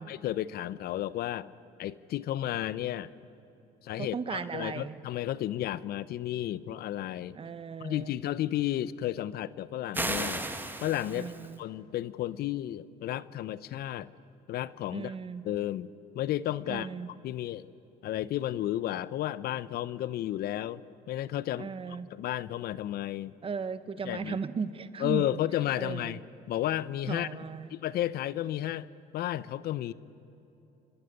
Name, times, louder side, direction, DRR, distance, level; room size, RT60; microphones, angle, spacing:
voice 1, 0.0-1.5 1.8-3.1 3.8-7.4 7.8-10.5 10.8-11.3 11.6-14.1 14.5-15.1 15.4-15.9 16.1-16.9 17.2-17.7 18.0-23.3 24.0-24.4 25.0-26.2 26.5-27.3 27.7-28.9 29.1-29.9, left 13 dB, 65° left, 18 dB, 0.7 m, -32 dB
voice 2, 4.0-5.0 7.3-8.1 11.1-11.6 14.9-15.4 16.7-17.1 21.6-22.1 23.4-25.2 25.8-26.2 27.1-27.7, right 5 dB, 35° right, 13 dB, 1.0 m, -36 dB
sound 1, 9.9-11.5, right 2 dB, 10° right, 1.6 m, -34 dB
30.0 x 12.0 x 9.8 m, 2.9 s
cardioid pair, 110°, 17 cm